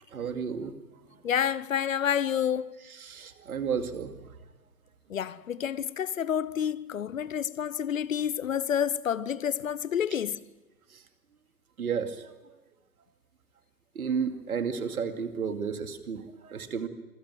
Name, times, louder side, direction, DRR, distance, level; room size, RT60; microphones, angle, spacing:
voice 1, 0.1-0.7 3.0-4.1 11.8-12.3 13.9-16.9, right 6 dB, 60° right, 2.5 m, -32 dB
voice 2, 1.2-2.8 5.1-10.4, left 9 dB, 55° left, 0.9 m, -29 dB
26.0 x 15.0 x 9.2 m
figure-of-eight pair, 125°, 48 cm